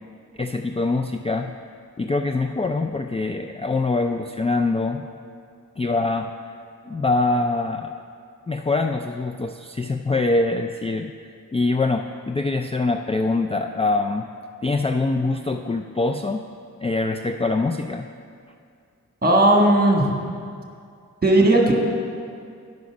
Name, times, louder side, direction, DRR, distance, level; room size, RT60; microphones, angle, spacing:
voice 1, 0.4-1.5 2.0-5.1 5.8-6.3 6.9-8.0 8.5-14.3 14.6-16.4 16.8-18.1, left 3 dB, 20° left, 5 dB, 0.3 m, -24 dB
voice 2, 19.2-20.1 21.2-21.7, right 1 dB, 30° right, 0 dB, 1.6 m, -16 dB
10.5 x 5.1 x 6.0 m, 2.3 s
cardioid pair, 60°, 31 cm